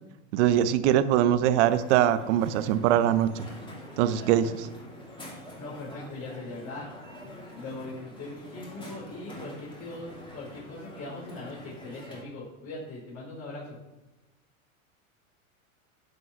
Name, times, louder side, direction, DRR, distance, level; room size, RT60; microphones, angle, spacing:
voice 1, 0.3-3.5 4.0-4.7, right 11 dB, 55° right, 12 dB, 0.8 m, -23 dB
Crowd, 1.6-12.2, equal, 10° left, 2.7 m, -45 dB
voice 2, 5.6-6.9 7.2-13.8, left 2 dB, 35° left, -5 dB, 4.0 m, -40 dB
11.0 x 5.4 x 5.7 m, 1.1 s
hypercardioid pair, 115°, 42 cm